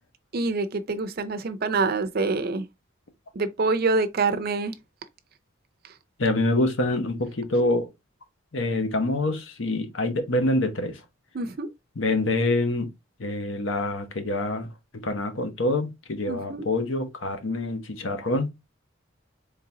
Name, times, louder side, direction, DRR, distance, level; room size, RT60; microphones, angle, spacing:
voice 1, 0.3-2.7 3.3-4.7 5.8-6.0 11.3-11.7 16.3-16.6, right 3 dB, 50° right, 0.5 m, -26 dB
voice 2, 6.2-7.9 8.5-11.0 12.0-12.9 13.2-14.7 15.0-18.5, left 2 dB, 70° left, 0.9 m, -26 dB
3.8 x 3.4 x 2.7 m
head